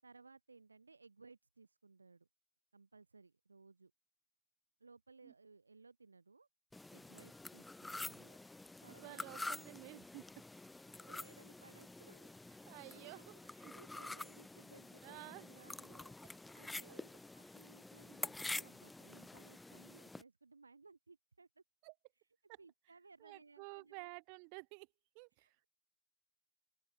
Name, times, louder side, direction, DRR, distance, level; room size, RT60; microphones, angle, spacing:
voice 1, 0.0-2.3 2.7-3.9 4.8-6.5 6.9-8.4 8.8-9.5 10.9-21.6 22.2-24.1 25.4-25.7, right 4 dB, 85° right, 4.1 m, -62 dB
sound 1, 6.7-20.2, left 2 dB, 10° left, 0.6 m, -48 dB
voice 2, 8.9-10.3 12.7-13.7 15.0-15.5 16.8-17.1 21.8-21.9 23.2-24.9 25.1-25.6, right 40 dB or more, 55° right, 2.9 m, -53 dB
open air
figure-of-eight pair, 80°, 0 cm